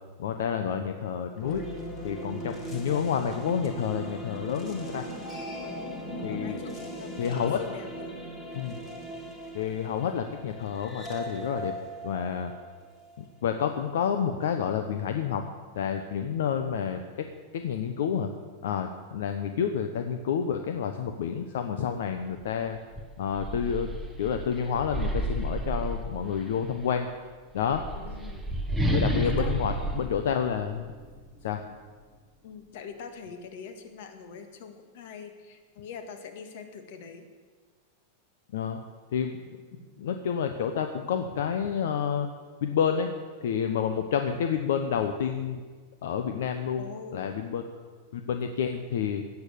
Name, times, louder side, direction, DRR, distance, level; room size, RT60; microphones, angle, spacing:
voice 1, 0.2-1.6 2.0-5.1 6.2-6.6 7.2-7.6 8.5-8.7 9.5-11.7 12.0-12.5 13.2-15.4 15.7-17.3 17.5-18.3 18.6-22.8 23.2-23.9 24.2-27.1 27.5-27.8 28.9-30.9 31.4-31.6 38.5-38.8 39.1-39.4 40.0-42.3 42.6-43.1 43.4-45.6 46.0-47.6 48.1-49.2, left 7 dB, 70° left, 6 dB, 1.0 m, -29 dB
sound 1, 1.4-13.5, right 1 dB, 20° left, 1.8 m, -39 dB
voice 2, 6.3-7.3 7.6-8.1 27.9-28.5 29.2-29.5 32.4-37.3 46.8-47.4, left 6 dB, 50° left, 7 dB, 1.8 m, -43 dB
sound 2, 22.4-22.5 22.9-26.6 27.5-31.1, equal, ahead, 1.0 m, -31 dB
17.0 x 7.1 x 8.5 m, 1.5 s
supercardioid pair, 180°, 0 cm